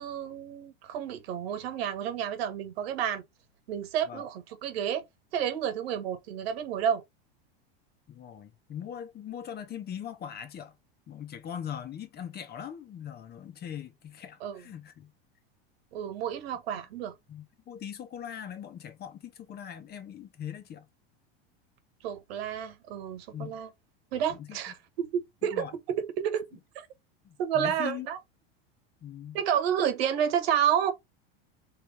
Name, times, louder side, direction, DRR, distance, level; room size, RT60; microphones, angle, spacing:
voice 1, 0.0-3.2 3.7-5.0 5.3-7.0 14.4-14.6 15.9-17.1 22.0-23.7 24.1-25.7 26.2-26.9 27.4-28.2 29.3-30.9, right 9 dB, 80° right, 1.4 m, -30 dB
voice 2, 8.1-10.7 11.1-15.1 17.3-20.9 23.3-23.6 24.3-24.6 25.5-25.7 27.2-28.1 29.0-29.4, left 9 dB, 30° left, 1.0 m, -41 dB
3.4 x 3.3 x 4.7 m
supercardioid pair, 115°, 30 cm